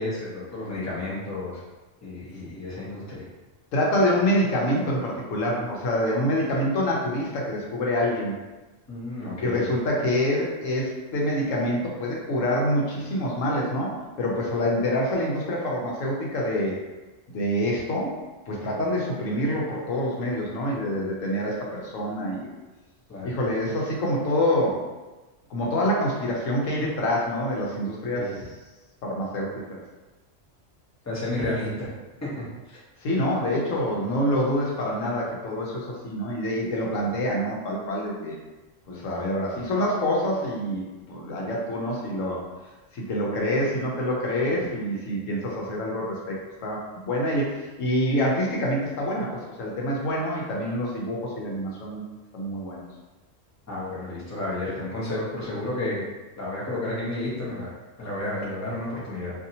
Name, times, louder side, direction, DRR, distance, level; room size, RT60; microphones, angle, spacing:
voice 1, 0.0-1.6 2.0-3.2 8.9-9.7 23.1-23.3 28.1-28.4 31.0-31.9 32.2-32.8 53.7-56.0 56.4-59.3, left 2 dB, 15° left, -8 dB, 0.7 m, -31 dB
voice 2, 3.7-8.3 9.4-16.8 17.3-18.1 18.5-22.5 23.2-24.8 25.5-28.4 29.0-29.6 33.0-38.4 38.9-42.4 42.9-52.0 52.3-52.8, equal, 90° left, -3 dB, 1.1 m, -26 dB
2.7 x 2.7 x 2.7 m, 1.2 s
omnidirectional pair, 1.3 m